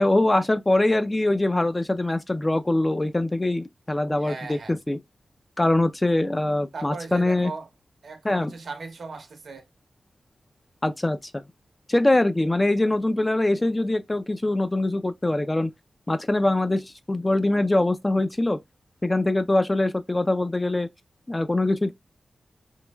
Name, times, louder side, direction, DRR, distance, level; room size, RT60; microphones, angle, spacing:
voice 1, 0.0-5.0 5.6-7.5 8.2-8.5 10.8-11.4 11.9-15.7 16.1-18.6 19.0-20.9 21.3-21.9, left 2 dB, 20° left, 0.3 m, -23 dB
voice 2, 4.2-4.8 6.7-7.7 8.0-9.7, right 4 dB, 70° right, 0.8 m, -38 dB
3.1 x 3.0 x 2.2 m
wide cardioid pair, 120°, 0 cm